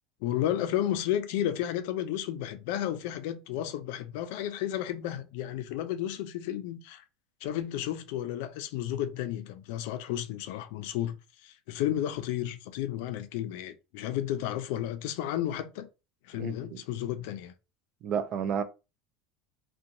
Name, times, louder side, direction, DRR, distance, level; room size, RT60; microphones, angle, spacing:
voice 1, 0.2-7.0 7.4-11.2 11.4-15.9 16.3-17.5, left 11 dB, 70° left, 0.4 m, -32 dB
voice 2, 16.4-16.8 18.0-18.6, right 7 dB, 40° right, 0.4 m, -31 dB
2.9 x 2.2 x 2.5 m
supercardioid pair, 145°, 0 cm